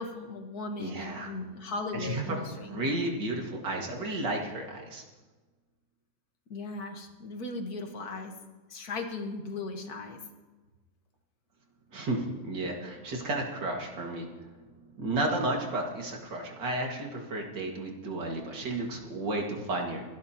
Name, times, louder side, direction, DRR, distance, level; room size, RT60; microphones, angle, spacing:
voice 1, 0.0-3.0 6.5-8.3 8.7-10.2, left 3 dB, 55° left, 4 dB, 1.9 m, -37 dB
voice 2, 0.8-1.3 1.9-5.0 11.9-14.3 15.0-20.0, right 2 dB, 70° right, 0 dB, 2.7 m, -32 dB
27.5 x 12.5 x 2.9 m, 1.3 s
omnidirectional pair, 2.0 m